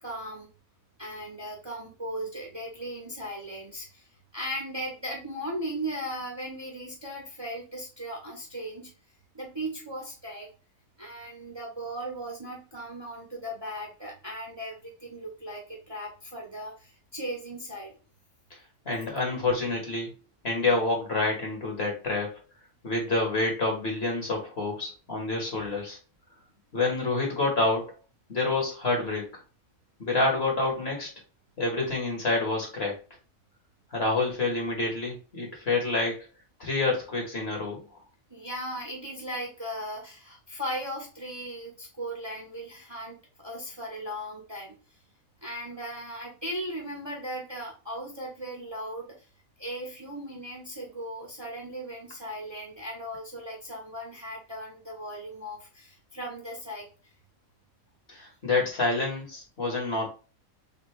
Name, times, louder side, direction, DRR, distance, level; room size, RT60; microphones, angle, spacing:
voice 1, 0.0-0.5 1.0-4.0 4.3-8.9 9.3-10.5 11.0-18.0 38.3-44.8 45.4-49.2 49.6-56.8, equal, 20° right, 0 dB, 0.9 m, -37 dB
voice 2, 18.8-20.1 20.4-22.4 22.8-26.0 26.7-27.9 28.3-29.3 30.0-31.1 31.6-33.0 33.9-36.3 36.6-38.0 58.1-60.1, left 2 dB, 50° left, 0 dB, 1.6 m, -28 dB
3.6 x 3.4 x 3.4 m, 0.33 s
omnidirectional pair, 1.5 m